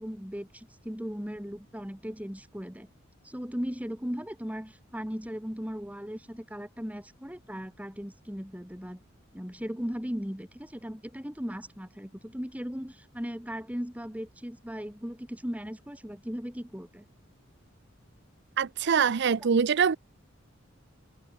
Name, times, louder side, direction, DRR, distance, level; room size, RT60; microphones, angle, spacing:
voice 1, 0.0-2.9 3.2-9.0 9.3-17.0, equal, 5° right, 2.8 m, -37 dB
voice 2, 18.6-20.0, right 6 dB, 60° right, 0.5 m, -24 dB
head